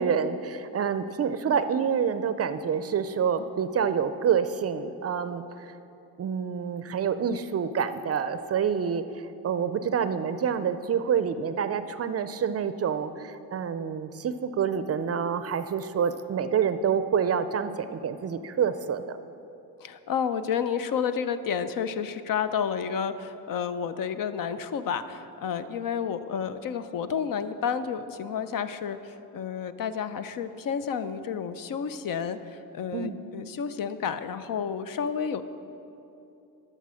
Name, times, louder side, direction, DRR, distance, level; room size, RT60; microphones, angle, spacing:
voice 1, 0.0-5.7 6.2-9.0 9.4-19.2 32.9-33.2, right 7 dB, 40° right, 12 dB, 0.5 m, -27 dB
voice 2, 19.8-35.4, left 7 dB, 60° left, 12 dB, 0.6 m, -30 dB
12.5 x 6.6 x 6.3 m, 2.9 s
cardioid pair, 105°, 39 cm